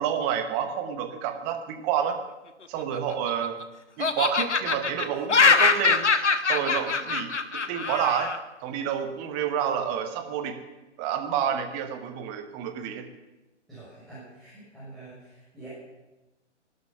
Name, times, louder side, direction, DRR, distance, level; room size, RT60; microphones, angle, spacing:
voice 1, 0.0-2.2 2.7-3.6 4.0-6.0 6.5-8.3 8.6-10.6 11.0-13.1, right 8 dB, 20° right, 7 dB, 1.1 m, -29 dB
Laughter, 2.8-3.6 4.0-8.4, left 4 dB, 70° left, 1.2 m, -23 dB
voice 2, 13.7-15.7, right 2 dB, ahead, -12 dB, 6.4 m, -46 dB
17.0 x 12.0 x 5.7 m, 1.1 s
figure-of-eight pair, 130°, 36 cm